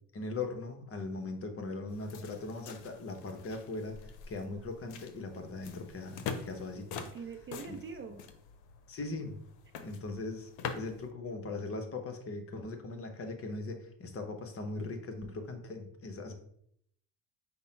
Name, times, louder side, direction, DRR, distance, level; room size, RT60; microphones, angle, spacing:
voice 1, 0.1-7.1 8.9-9.4 9.8-16.3, left 3 dB, 30° left, 5 dB, 0.9 m, -40 dB
sound 1, 1.9-11.1, left 6 dB, 70° left, 0.7 m, -45 dB
voice 2, 7.1-8.3, right 5 dB, 30° right, 5 dB, 0.5 m, -43 dB
5.3 x 2.1 x 4.3 m, 0.69 s
supercardioid pair, 85°, 43 cm